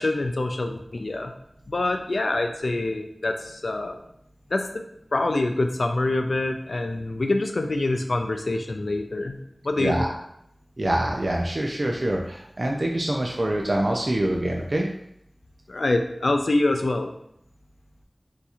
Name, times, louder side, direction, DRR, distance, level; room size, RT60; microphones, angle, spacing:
voice 1, 0.0-1.3 1.7-4.0 4.5-4.8 5.1-9.4 9.6-10.1 15.7-17.1, left 2 dB, 90° left, 5 dB, 0.3 m, -25 dB
voice 2, 9.8-10.1 10.8-14.9, right 1 dB, 60° right, 0 dB, 0.4 m, -25 dB
2.7 x 2.4 x 4.2 m, 0.75 s
wide cardioid pair, 50°, 0 cm